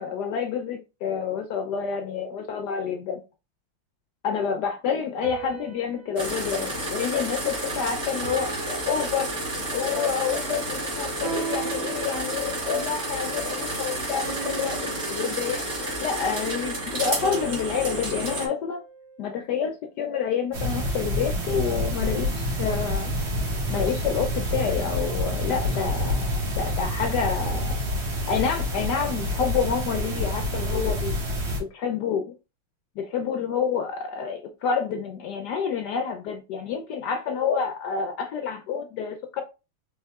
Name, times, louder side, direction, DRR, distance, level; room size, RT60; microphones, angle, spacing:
voice 1, 0.0-3.2 4.2-9.3 9.7-15.6 16.0-18.8 19.2-23.1 23.7-26.2 26.5-27.7 28.3-31.2 31.5-32.3 33.0-39.4, left 6 dB, 75° left, 0.9 m, -28 dB
sound 1, 5.2-7.7 8.2-10.0 11.2-12.8 14.2-16.1 17.2-19.6, right 7 dB, 65° right, 0.8 m, -39 dB
sound 2, 6.2-18.5, right 1 dB, 40° right, 1.7 m, -31 dB
sound 3, 20.5-31.6, equal, 80° right, 2.3 m, -27 dB
4.5 x 3.4 x 2.3 m
omnidirectional pair, 2.3 m